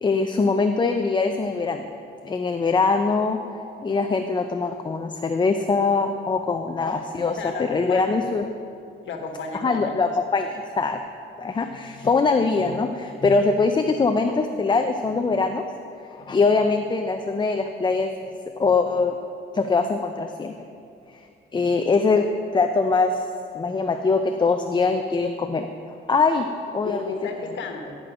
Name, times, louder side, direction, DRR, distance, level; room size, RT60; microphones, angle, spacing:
voice 1, 0.0-1.8 2.2-3.4 3.8-8.5 9.5-10.5 10.8-11.0 11.4-15.6 16.1-18.3 18.6-19.2 19.5-20.5 21.5-23.3 23.5-25.7 26.1-26.4 26.7-27.2, left 4 dB, 25° left, 6 dB, 0.5 m, -22 dB
voice 2, 7.2-8.0 9.1-9.9 26.8-28.0, left 4 dB, 70° left, 3 dB, 1.3 m, -33 dB
11.0 x 6.0 x 5.1 m, 2.4 s
cardioid pair, 90°, 20 cm